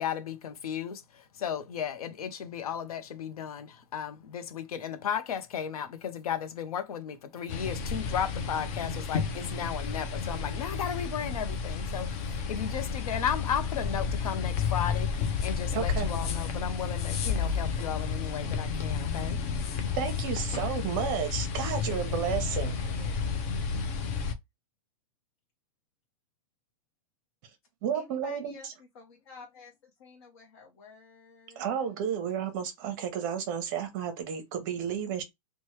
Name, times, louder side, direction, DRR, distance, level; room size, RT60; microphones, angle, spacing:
voice 1, 0.0-19.4, left 8 dB, 85° left, 0.7 m, -35 dB
sound 1, 7.5-24.3, left 6 dB, 25° left, 0.3 m, -31 dB
voice 2, 15.7-16.1 20.0-22.8 27.8-28.7 31.6-35.2, right 8 dB, 35° right, 0.8 m, -32 dB
voice 3, 21.9-23.2 27.9-31.9, left 4 dB, 45° left, 0.8 m, -51 dB
3.0 x 2.2 x 3.1 m
supercardioid pair, 165°, 18 cm